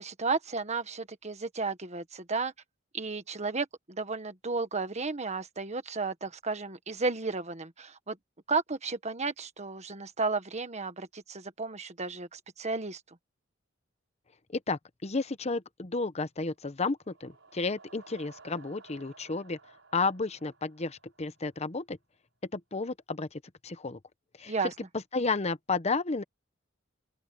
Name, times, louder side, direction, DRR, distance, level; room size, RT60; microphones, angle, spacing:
voice 1, 0.0-2.5 2.9-8.2 8.5-13.0 24.5-24.7, right 4 dB, 35° right, 1.5 m, -33 dB
voice 2, 14.5-19.6 19.9-22.0 22.5-24.0 24.4-24.5 25.1-26.2, left 3 dB, 35° left, 0.9 m, -32 dB
sound 1, 16.8-21.6, right 4 dB, 75° right, 7.5 m, -56 dB
open air
head